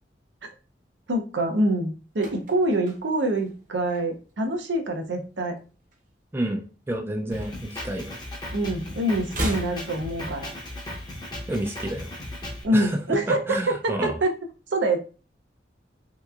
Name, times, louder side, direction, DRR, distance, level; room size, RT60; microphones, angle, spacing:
voice 1, 1.1-5.5 8.5-10.5 12.6-14.3 14.7-15.0, right 1 dB, 80° right, 4 dB, 0.7 m, -25 dB
sound 1, 1.9-4.5 4.8-5.1 5.3-6.8 7.1-8.4 8.7-10.8 11.1-11.2, right 1 dB, 45° right, 0.9 m, -37 dB
voice 2, 6.3-8.2 11.5-12.1 12.7-14.2, right 1 dB, 15° right, 1 dB, 0.4 m, -30 dB
Drum kit, 7.3-12.6, left 1 dB, 25° left, 0.7 m, -37 dB
3.3 x 2.9 x 2.4 m, 0.34 s
head